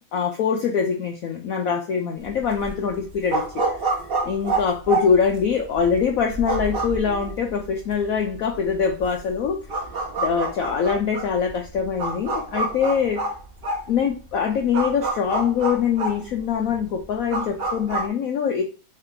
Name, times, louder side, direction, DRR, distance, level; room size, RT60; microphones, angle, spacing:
voice 1, 0.1-3.4 4.3-9.6 10.2-13.2 13.9-18.6, left 6 dB, 80° left, 3 dB, 0.7 m, -23 dB
sound 1, 2.2-18.1, right 3 dB, 45° right, 0.7 m, -29 dB
3.5 x 3.4 x 3.7 m, 0.35 s
omnidirectional pair, 2.1 m